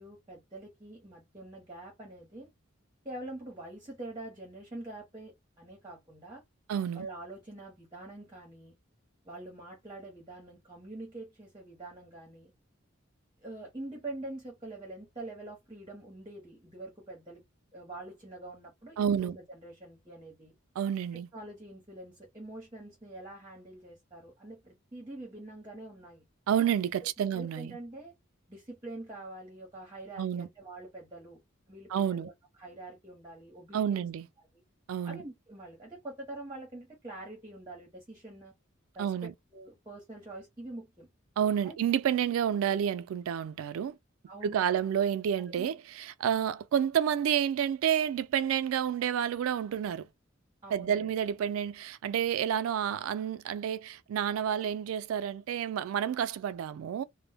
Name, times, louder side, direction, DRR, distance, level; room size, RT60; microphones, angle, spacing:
voice 1, 0.0-2.5 3.0-6.4 6.9-8.7 9.2-12.5 13.4-17.4 17.7-20.5 21.1-26.2 27.0-28.1 28.5-31.4 31.7-32.3 32.6-34.1 35.0-38.5 38.9-41.1 41.6-41.8 44.3-44.8 45.6-45.7 50.6-51.1, right 2 dB, 20° right, 0.8 m, -45 dB
voice 2, 6.7-7.1 19.0-19.4 20.8-21.3 26.5-27.7 30.2-30.5 31.9-32.3 33.7-34.3 34.9-35.2 39.0-39.3 41.4-44.0 44.4-50.1 50.7-57.0, right 9 dB, 90° right, 0.3 m, -29 dB
2.1 x 2.0 x 3.3 m
head